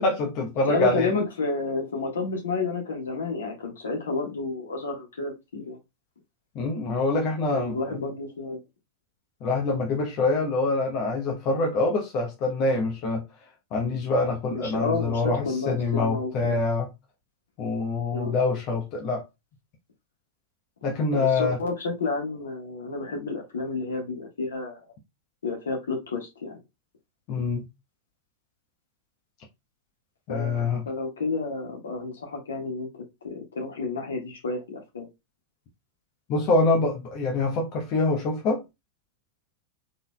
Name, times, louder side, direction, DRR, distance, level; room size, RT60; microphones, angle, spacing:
voice 1, 0.0-1.1 6.5-8.1 9.4-13.2 13.7-16.9 17.6-19.2 20.8-21.6 27.3-27.7 30.3-30.8 36.3-38.6, left 3 dB, 40° left, 1.0 m, -25 dB
voice 2, 0.7-5.8 7.5-8.6 14.5-16.6 18.1-18.3 21.1-24.8 25.4-26.6 30.3-35.1, left 3 dB, 70° left, 1.6 m, -30 dB
4.1 x 3.8 x 2.3 m
figure-of-eight pair, 90°, 0 cm